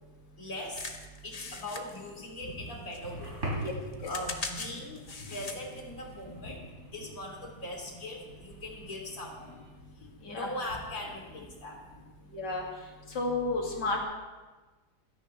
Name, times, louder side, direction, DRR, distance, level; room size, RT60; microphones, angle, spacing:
voice 1, 0.4-0.9 1.2-3.4 4.0-5.0 5.3-6.6 6.9-9.5 10.2-11.8, left 1 dB, 50° left, -2 dB, 3.5 m, -40 dB
sound 1, 0.7-2.7 2.9-5.8 6.3-6.4, left 3 dB, 35° left, 0.7 m, -41 dB
sound 2, 1.5-9.7, right 1 dB, 40° right, 4.4 m, -44 dB
voice 2, 12.3-12.6 13.1-14.0, left 2 dB, 75° left, -1 dB, 2.9 m, -31 dB
16.0 x 13.0 x 3.4 m, 1.3 s
omnidirectional pair, 1.9 m